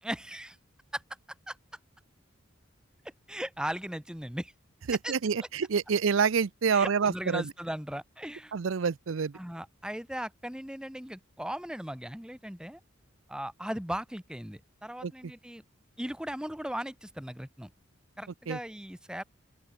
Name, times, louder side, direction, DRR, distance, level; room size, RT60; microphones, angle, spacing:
voice 1, 0.0-0.6 0.9-1.0 1.5-1.6 3.3-4.5 5.0-5.1 6.7-8.5 9.3-12.8 13.3-15.6 16.0-17.7 18.2-19.2, right 1 dB, 5° right, 1.0 m, -37 dB
voice 2, 4.9-7.5 8.5-9.4 15.0-15.1 18.5-18.6, right 6 dB, 70° right, 0.5 m, -27 dB
open air
head